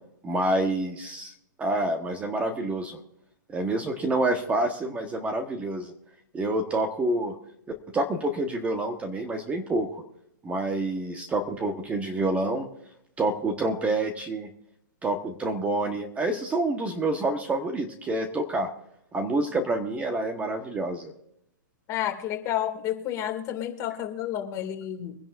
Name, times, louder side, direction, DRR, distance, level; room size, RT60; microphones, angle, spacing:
voice 1, 0.2-1.3 1.6-3.0 3.5-5.9 6.3-7.4 7.9-10.0 10.4-12.7 13.2-14.5 15.0-18.7 19.1-21.1, right 2 dB, 10° right, 4 dB, 1.3 m, -27 dB
voice 2, 21.9-25.2, left 11 dB, 30° left, 4 dB, 2.4 m, -30 dB
24.0 x 10.5 x 2.6 m, 0.75 s
hypercardioid pair, 135°, 11 cm